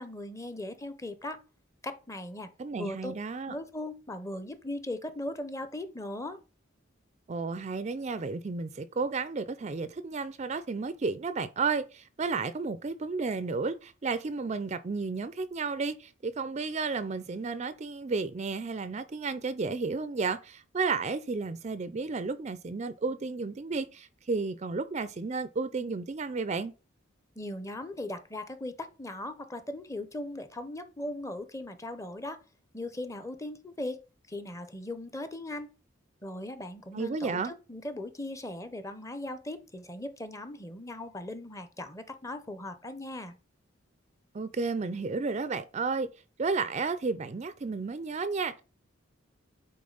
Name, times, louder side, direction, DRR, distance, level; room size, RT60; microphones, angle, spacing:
voice 1, 0.0-1.4 1.8-3.1 3.5-6.4 27.4-32.4 32.7-34.0 34.3-35.7 36.2-43.4, left 1 dB, 15° left, 0.7 m, -38 dB
voice 2, 2.6-3.6 7.3-26.7 36.9-37.5 44.3-46.1 46.4-48.6, right 4 dB, 35° right, 0.4 m, -32 dB
8.5 x 4.1 x 3.9 m
head